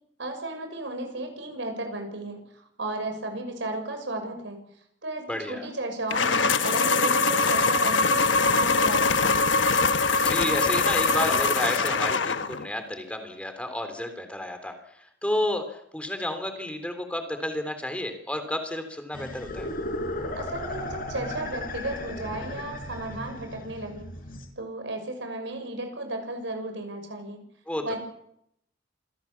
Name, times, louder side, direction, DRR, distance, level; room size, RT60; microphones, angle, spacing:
voice 1, 0.2-4.6 5.0-9.4 20.3-24.1 24.6-27.4 27.8-28.0, right 2 dB, 75° right, 5 dB, 6.4 m, -34 dB
voice 2, 5.3-5.7 10.1-19.7 27.7-27.8, left 1 dB, 5° left, 7 dB, 3.4 m, -31 dB
sound 1, 6.1-12.7, left 4 dB, 80° left, 1.2 m, -23 dB
sound 2, 19.1-24.4, left 1 dB, 50° left, 5.3 m, -35 dB
27.0 x 17.5 x 7.2 m, 0.74 s
head